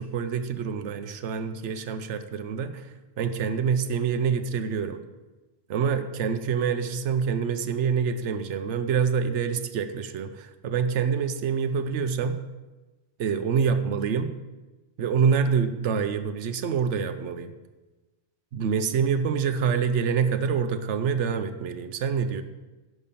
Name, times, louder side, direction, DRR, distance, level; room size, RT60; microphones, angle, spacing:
voice 1, 0.0-5.0 5.7-12.4 13.2-14.3 15.0-17.5 18.5-22.4, right 6 dB, 80° right, 9 dB, 1.0 m, -26 dB
11.0 x 6.1 x 6.9 m, 1.2 s
omnidirectional pair, 1.2 m